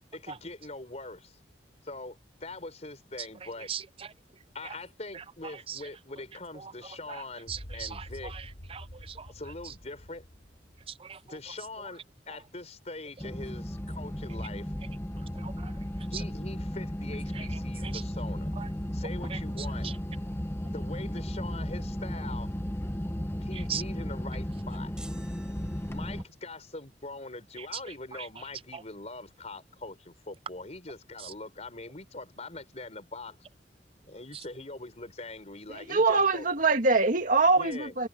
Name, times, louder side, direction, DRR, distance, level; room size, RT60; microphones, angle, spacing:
voice 1, 0.1-1.4 1.8-3.7 4.5-8.3 9.3-10.2 11.2-14.7 16.1-18.5 18.9-19.9 20.7-22.5 23.4-24.9 25.9-33.4 34.0-36.5 37.6-38.0, left 2 dB, 40° left, 5.4 m, -42 dB
voice 2, 3.7-4.1 5.7-5.8 6.6-6.7 7.1-7.2 7.5-8.4 8.7-9.3 11.0-11.2 15.4-15.7 16.1-16.2 17.3-17.5 17.8-17.9 18.6-18.7 19.3-19.4 19.8-19.9 23.7-23.8 27.6-27.7 28.2-28.3 28.7-28.8 31.2-31.3, right 8 dB, 35° right, 0.6 m, -39 dB
sound 1, 7.5-11.8, equal, 70° left, 3.7 m, -47 dB
sound 2, 13.2-26.2, equal, 15° left, 1.2 m, -35 dB
sound 3, 25.0-26.5, right 1 dB, 5° right, 7.3 m, -52 dB
voice 3, 35.7-38.1, right 3 dB, 50° right, 2.0 m, -24 dB
head